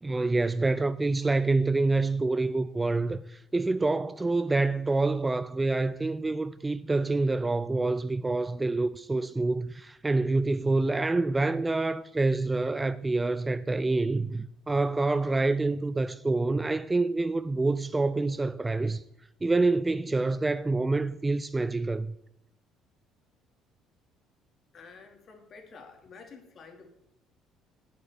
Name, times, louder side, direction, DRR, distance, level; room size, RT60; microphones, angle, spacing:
voice 1, 0.0-19.0 19.4-22.1, right 3 dB, 15° right, 0.4 m, -27 dB
voice 2, 24.7-26.9, left 4 dB, 40° left, 2.7 m, -50 dB
8.5 x 8.0 x 9.0 m
cardioid pair, 125°, 0 cm